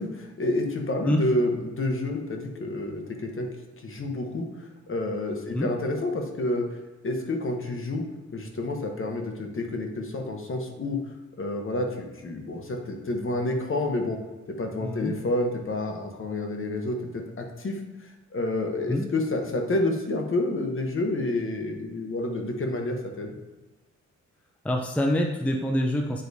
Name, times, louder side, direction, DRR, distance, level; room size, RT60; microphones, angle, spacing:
voice 1, 0.0-3.5 3.8-6.8 7.0-8.0 8.3-11.0 11.4-14.2 14.5-23.4, left 2 dB, 45° left, 3 dB, 1.0 m, -29 dB
voice 2, 14.8-15.1 18.9-19.1 24.6-26.2, left 1 dB, 5° left, 2 dB, 0.5 m, -26 dB
8.8 x 4.6 x 2.7 m, 1.1 s
wide cardioid pair, 105°, 30 cm